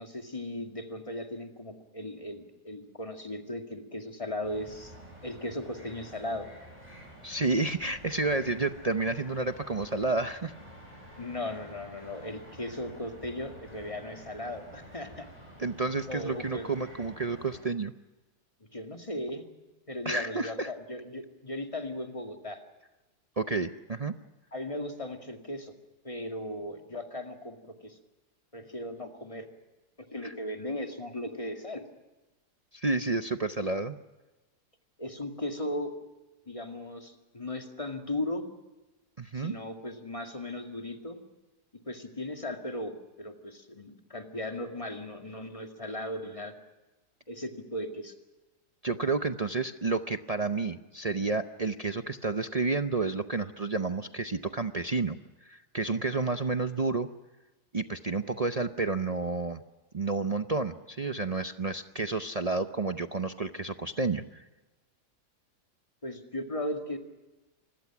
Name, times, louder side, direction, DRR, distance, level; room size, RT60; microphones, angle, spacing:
voice 1, 0.0-4.9 5.2-6.5 11.2-15.3 16.1-16.7 18.7-19.5 19.9-22.6 24.5-25.8 26.0-28.0 28.5-29.5 30.1-31.8 35.0-35.9 36.5-38.4 39.3-41.2 41.9-46.5 47.3-48.1 66.0-67.0, left 1 dB, 20° left, 4 dB, 2.1 m, -37 dB
sound 1, 4.4-17.6, equal, 25° right, 8.2 m, -50 dB
voice 2, 7.2-10.5 15.6-17.9 20.0-20.7 23.4-24.1 30.2-30.3 32.7-34.0 39.2-39.6 48.8-55.2 55.4-57.1 57.7-59.6 59.9-64.4, right 3 dB, 45° right, 7 dB, 0.5 m, -30 dB
27.0 x 21.0 x 6.0 m, 1.1 s
omnidirectional pair, 1.7 m